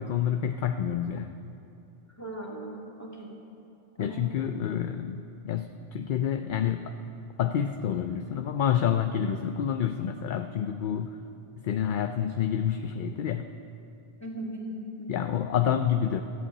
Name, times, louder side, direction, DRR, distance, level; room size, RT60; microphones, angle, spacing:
voice 1, 0.0-1.6 4.0-7.0 7.4-11.2 11.6-13.5 15.1-16.2, left 9 dB, 60° left, 7 dB, 0.6 m, -28 dB
voice 2, 2.2-3.3 4.0-4.2 14.2-15.2, right 1 dB, 15° left, -3 dB, 2.3 m, -38 dB
14.0 x 8.2 x 8.5 m, 2.7 s
omnidirectional pair, 1.1 m